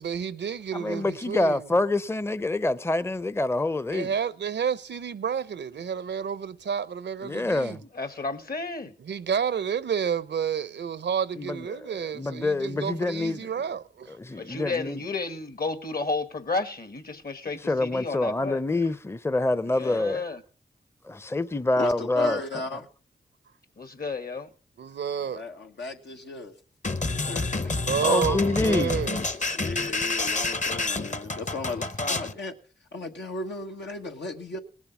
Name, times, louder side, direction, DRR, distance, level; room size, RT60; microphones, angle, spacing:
voice 1, 0.0-1.6 3.9-7.8 9.0-14.2 24.8-25.4 27.9-29.2, right 7 dB, 80° right, 0.6 m, -30 dB
voice 2, 0.7-4.1 7.2-7.8 11.4-13.5 14.1-15.0 17.6-20.2 21.0-22.4 28.0-29.0, left 2 dB, 15° left, 0.6 m, -26 dB
voice 3, 7.9-8.9 14.4-18.6 19.7-20.4 23.8-24.5 31.8-32.3, left 3 dB, 60° left, 1.7 m, -32 dB
voice 4, 21.8-22.9 25.3-26.5 27.0-27.7 29.5-32.5 32.9-34.6, left 3 dB, 85° left, 1.4 m, -35 dB
sound 1, 26.8-32.3, left 3 dB, 45° left, 1.0 m, -29 dB
18.5 x 7.3 x 5.9 m
cardioid pair, 40°, 18 cm